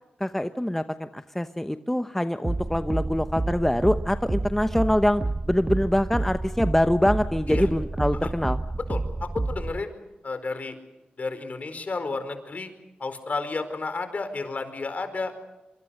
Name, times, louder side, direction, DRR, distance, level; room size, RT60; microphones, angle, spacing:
voice 1, 0.2-8.6, left 1 dB, 10° left, 10 dB, 0.9 m, -24 dB
sound 1, 2.4-9.8, right 2 dB, 25° right, 1.0 m, -29 dB
voice 2, 8.9-9.9 10.2-10.7 11.2-12.7 13.0-15.3, left 3 dB, 50° left, 9 dB, 4.7 m, -32 dB
25.0 x 24.5 x 6.5 m, 1.0 s
cardioid pair, 60°, 3 cm